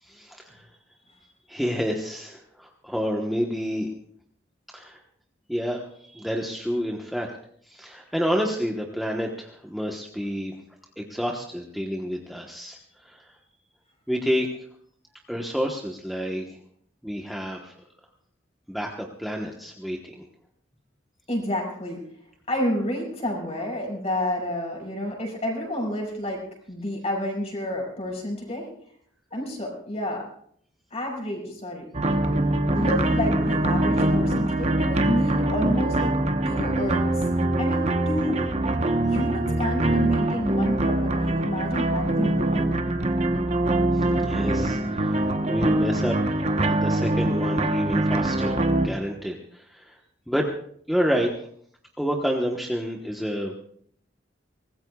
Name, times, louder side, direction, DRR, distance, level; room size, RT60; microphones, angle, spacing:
voice 1, 0.0-0.6 1.5-3.9 4.7-5.0 5.5-7.3 7.7-10.5 11.0-13.4 14.1-14.7 15.3-16.6 17.0-17.8 18.7-20.2 43.9-46.2 46.6-50.0 50.3-50.5 50.9-51.3 52.0-53.5, equal, ahead, -1 dB, 1.1 m, -29 dB
voice 2, 21.3-22.0 22.5-28.7 29.3-30.3 30.9-31.9 32.7-36.1 36.4-37.3 37.6-38.5 39.0-42.8, left 1 dB, 35° left, -1 dB, 6.0 m, -30 dB
sound 1, 31.9-48.9, right 1 dB, 35° right, 1.0 m, -23 dB
24.0 x 19.0 x 2.4 m, 0.62 s
head